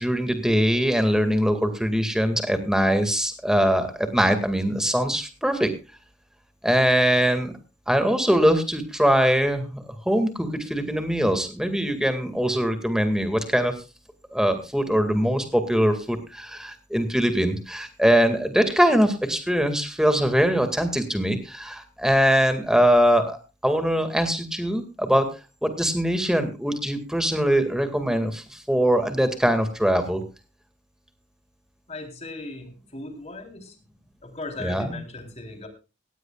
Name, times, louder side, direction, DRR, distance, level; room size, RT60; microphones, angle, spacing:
voice 1, 0.0-5.7 6.6-7.5 7.9-13.7 14.3-25.3 25.6-30.2 34.6-34.9, equal, 5° right, 7 dB, 2.1 m, -22 dB
voice 2, 31.9-33.8 34.2-35.7, left 2 dB, 35° left, 4 dB, 3.6 m, -37 dB
17.5 x 16.0 x 2.4 m, 0.30 s
head